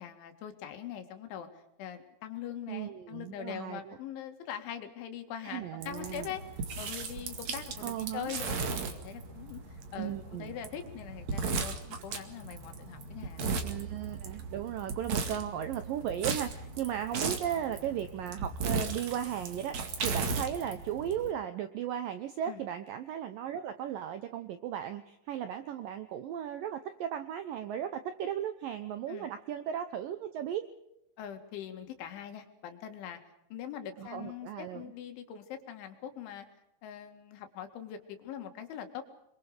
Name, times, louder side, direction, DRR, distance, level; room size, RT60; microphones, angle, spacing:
voice 1, 0.0-13.5 22.4-22.6 29.1-29.3 31.2-33.2 33.5-36.5 36.8-39.0, left 9 dB, 85° left, 6 dB, 4.4 m, -42 dB
voice 2, 2.7-4.0 5.4-6.3 7.8-8.3 10.0-10.5 13.6-30.7 34.0-34.8, right 10 dB, 80° right, 10 dB, 2.0 m, -36 dB
sound 1, 5.8-21.3, right 4 dB, 50° right, 2.7 m, -37 dB
27.0 x 23.0 x 5.1 m, 0.83 s
omnidirectional pair, 5.3 m